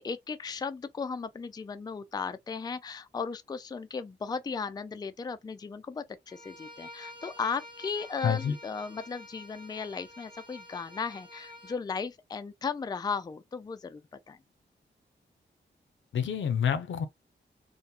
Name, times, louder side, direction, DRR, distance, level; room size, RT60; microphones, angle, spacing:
voice 1, 0.0-14.0 14.3-14.4, left 5 dB, 20° left, 0.3 m, -36 dB
Bowed string instrument, 6.3-11.8, left 1 dB, 25° right, 1.1 m, -49 dB
voice 2, 8.2-8.6 16.1-17.1, left 8 dB, 75° left, 0.5 m, -28 dB
2.4 x 2.2 x 2.8 m
cardioid pair, 50°, 20 cm